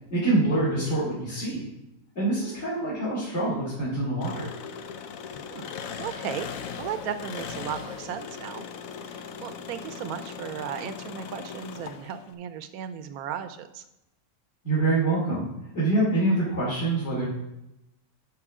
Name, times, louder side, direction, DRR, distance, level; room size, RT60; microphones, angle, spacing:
voice 1, 0.1-1.7 2.1-4.5 14.6-15.5 15.7-17.3, right 2 dB, 45° left, -10 dB, 3.1 m, -25 dB
Engine, 4.2-12.3, left 7 dB, 70° left, 1.0 m, -39 dB
voice 2, 5.4-8.6 9.0-13.8, right 8 dB, 75° right, 10 dB, 1.1 m, -36 dB
10.5 x 6.1 x 3.6 m, 0.89 s
omnidirectional pair, 1.6 m